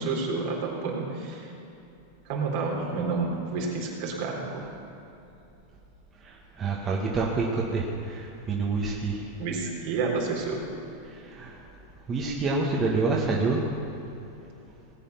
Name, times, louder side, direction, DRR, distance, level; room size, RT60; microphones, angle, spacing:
voice 1, 0.0-1.5 2.3-4.7 9.4-10.7, right 4 dB, 60° right, -2 dB, 3.7 m, -30 dB
voice 2, 6.2-9.2 11.0-11.6 12.1-13.6, right 3 dB, 30° right, -3 dB, 1.9 m, -27 dB
19.0 x 8.6 x 6.0 m, 2.9 s
hypercardioid pair, 100°, 0 cm